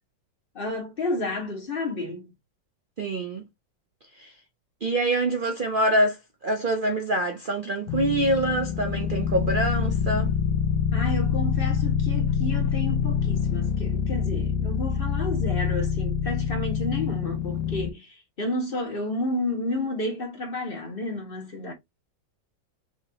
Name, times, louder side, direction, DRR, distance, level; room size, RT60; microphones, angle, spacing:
voice 1, 0.5-2.3 10.9-21.7, left 2 dB, 30° left, 1.4 m, -31 dB
voice 2, 3.0-3.5 4.2-4.3 4.8-10.3, right 1 dB, 85° right, 0.4 m, -25 dB
sound 1, 7.9-17.9, left 7 dB, 80° left, 1.4 m, -26 dB
6.1 x 2.8 x 2.8 m
omnidirectional pair, 2.0 m